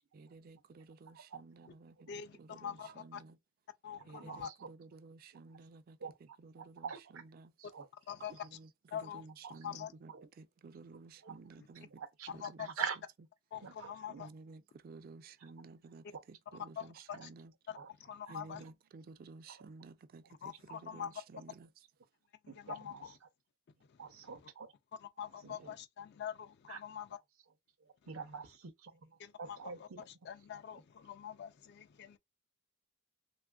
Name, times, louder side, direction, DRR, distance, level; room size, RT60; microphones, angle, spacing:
voice 1, 0.1-3.4 4.1-7.5 8.2-12.7 14.2-17.5 18.3-21.8, right 3 dB, 45° right, 0.3 m, -54 dB
voice 2, 2.1-3.2 3.8-4.5 8.1-8.3 8.9-9.2 9.6-9.9 11.6-11.7 12.3-12.7 13.5-14.3 16.8-17.3 17.7-18.6 20.4-21.1 22.4-23.1 23.9-24.0 25.0-27.2 29.2-32.2, left 8 dB, 55° left, 0.3 m, -45 dB
voice 3, 3.9-4.7 6.0-6.1 6.6-7.2 7.6-7.9 9.4-9.6 10.1-10.3 11.2-11.4 12.0-12.3 12.6-13.0 13.6-14.2 16.1-16.2 17.1-17.3 17.8-17.9 18.3-18.4 18.6-18.7 22.5-23.0 24.0-24.7 25.4-25.7 26.7-26.8 27.8-30.1, right 6 dB, 85° right, 0.6 m, -45 dB
3.2 x 2.4 x 2.2 m
head